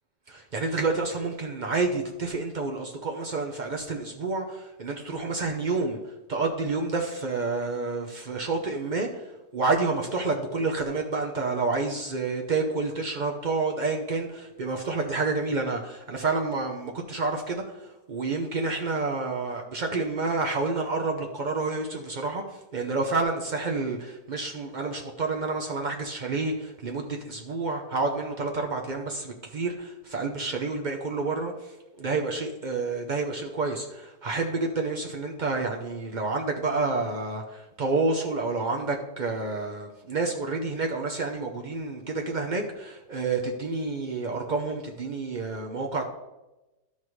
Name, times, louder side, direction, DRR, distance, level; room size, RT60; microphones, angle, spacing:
voice 1, 0.3-6.0 6.3-9.2 9.5-22.4 22.7-31.5 32.0-46.1, right 3 dB, 75° right, 2 dB, 0.4 m, -29 dB
12.0 x 5.6 x 3.2 m, 1.0 s
omnidirectional pair, 1.9 m